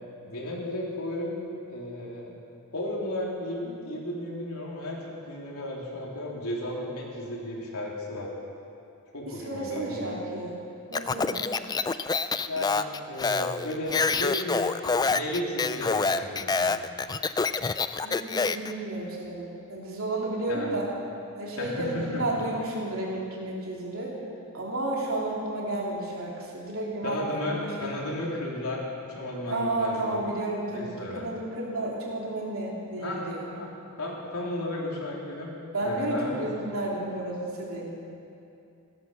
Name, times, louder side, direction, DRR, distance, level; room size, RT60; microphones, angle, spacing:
voice 1, 0.3-2.3 2.7-8.3 9.1-10.2 12.5-14.7 15.1-16.8 20.5-20.7 21.6-22.4 27.0-28.8 29.1-30.2 30.7-31.3 33.0-33.2 33.5-33.7 34.0-35.5 35.8-36.5, left 1 dB, 80° left, -3 dB, 3.4 m, -34 dB
voice 2, 9.3-10.6 10.9-11.5 18.0-20.9 21.4-24.1 24.5-27.9 29.5-33.4 35.7-37.9, right 1 dB, 65° right, -3 dB, 3.5 m, -32 dB
Speech, 10.9-18.7, left 4 dB, 20° left, 0.3 m, -27 dB
16.5 x 12.5 x 6.8 m, 2.7 s
head